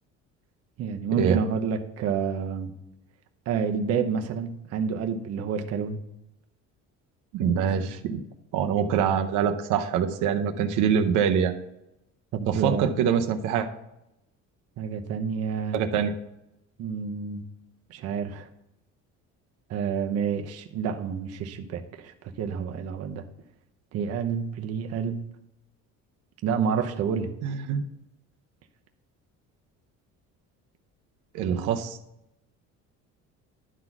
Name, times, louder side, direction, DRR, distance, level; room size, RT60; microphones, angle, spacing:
voice 1, 0.8-2.7 3.5-6.0 7.5-7.9 12.3-12.8 14.8-15.8 16.8-17.4 17.9-18.5 19.7-23.2 23.9-25.2 26.4-27.3 31.4-31.7, right 6 dB, 55° right, 5 dB, 0.8 m, -29 dB
voice 2, 7.3-8.2 8.5-11.5 12.5-13.7 15.7-16.1 27.4-27.8 31.3-32.0, right 7 dB, 90° right, 5 dB, 0.8 m, -24 dB
11.0 x 4.0 x 5.9 m, 0.86 s
cardioid pair, 155°, 30 cm